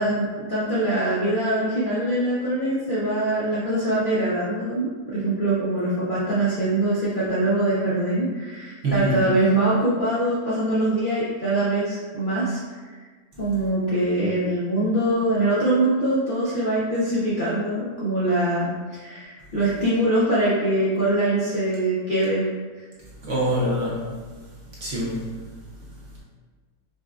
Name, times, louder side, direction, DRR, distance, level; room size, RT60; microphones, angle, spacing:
voice 1, 0.0-12.6 13.4-22.5, right 1 dB, 50° left, -10 dB, 0.6 m, -23 dB
voice 2, 8.8-9.2 23.2-24.0 24.8-25.2, equal, 55° right, -7 dB, 1.0 m, -24 dB
5.3 x 2.3 x 2.4 m, 1.4 s
omnidirectional pair, 1.7 m